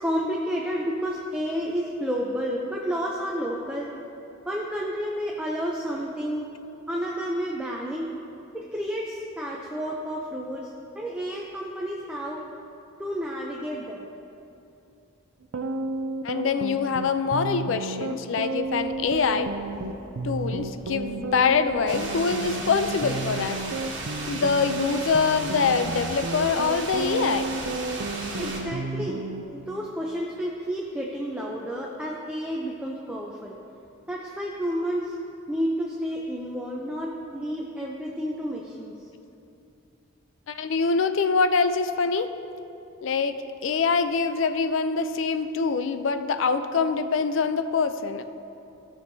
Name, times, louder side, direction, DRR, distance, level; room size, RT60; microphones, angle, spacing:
voice 1, 0.0-3.9 4.5-6.5 6.9-8.1 8.5-12.4 13.0-14.1 28.4-33.6 34.1-35.1 35.5-38.9, equal, 5° right, -3 dB, 0.5 m, -30 dB
sound 1, 15.4-29.4, right 3 dB, 80° right, 0.5 m, -32 dB
voice 2, 16.2-19.5 20.2-23.6 24.3-27.6 40.5-42.3 43.0-43.4 43.6-48.2, left 5 dB, 70° left, 10 dB, 0.4 m, -24 dB
Bird vocalization bird call bird song, 18.6-28.7, equal, 25° right, 1.8 m, -49 dB
sound 2, 21.9-28.6, right 3 dB, 65° right, 1.4 m, -35 dB
15.5 x 6.4 x 2.7 m, 2.7 s
head